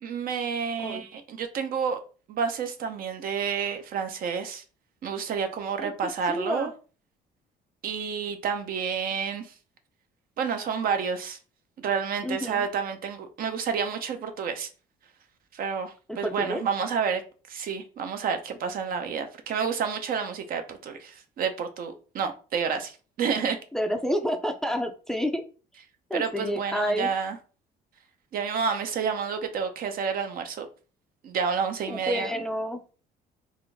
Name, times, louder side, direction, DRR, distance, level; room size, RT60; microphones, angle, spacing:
voice 1, 0.0-2.0 2.3-4.6 5.0-6.7 7.8-9.5 10.4-11.4 11.8-14.7 15.5-17.2 17.5-23.6 26.1-27.4 28.3-30.7 31.2-32.3, right 6 dB, 60° right, 0.8 m, -29 dB
voice 2, 5.8-6.7 12.2-12.7 16.1-16.6 23.7-25.4 26.1-27.1 31.9-32.8, equal, 5° left, 0.4 m, -29 dB
3.7 x 2.5 x 3.4 m
cardioid pair, 110°, 17 cm